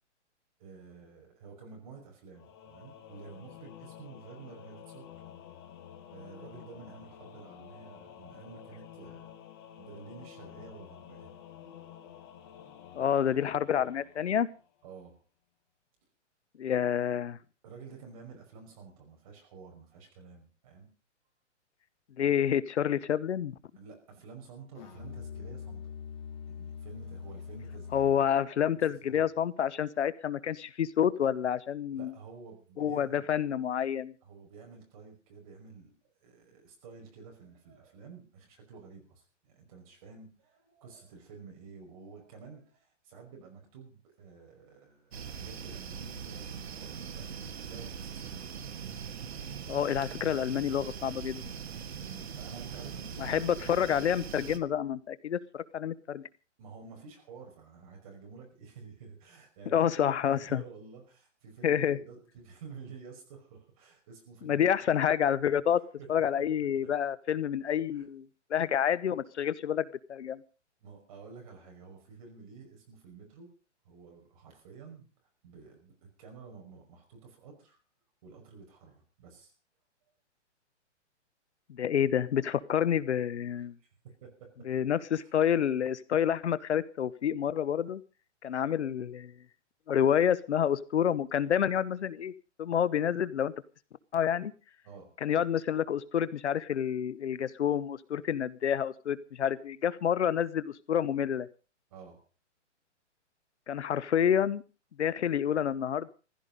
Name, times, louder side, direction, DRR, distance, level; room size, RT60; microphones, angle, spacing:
voice 1, 0.6-5.1 6.1-9.3 9.8-11.3 14.8-15.2 17.6-20.9 23.8-25.9 26.5-28.2 29.0-29.2 31.9-33.3 34.2-48.7 50.8-50.9 52.0-53.6 56.6-64.7 66.0-66.1 66.4-66.5 66.8-66.9 67.9-68.0 70.8-73.5 73.8-75.1 75.4-77.8 78.2-79.5 83.5-84.5 85.2-85.4 94.8-95.2 101.9-102.3, right 5 dB, 30° right, 1 dB, 5.5 m, -50 dB
Singing / Musical instrument, 2.3-14.8, left 9 dB, 20° left, 1.6 m, -51 dB
voice 2, 12.9-14.5 16.6-17.4 22.2-23.5 27.9-32.1 32.8-34.1 49.7-51.4 53.2-56.2 59.7-60.6 61.6-62.0 64.4-65.8 66.1-70.4 81.7-83.8 84.7-88.0 88.4-89.3 89.9-92.3 92.6-93.5 94.1-94.5 95.2-101.5 103.7-104.6 105.0-106.1, left 9 dB, 70° left, 17 dB, 1.1 m, -28 dB
Musical instrument, 24.7-28.3, left 6 dB, 35° left, 2.8 m, -43 dB
sound 1, 45.1-54.6, right 7 dB, 60° right, 1.8 m, -41 dB
15.5 x 14.5 x 5.2 m, 0.36 s
hypercardioid pair, 180°, 36 cm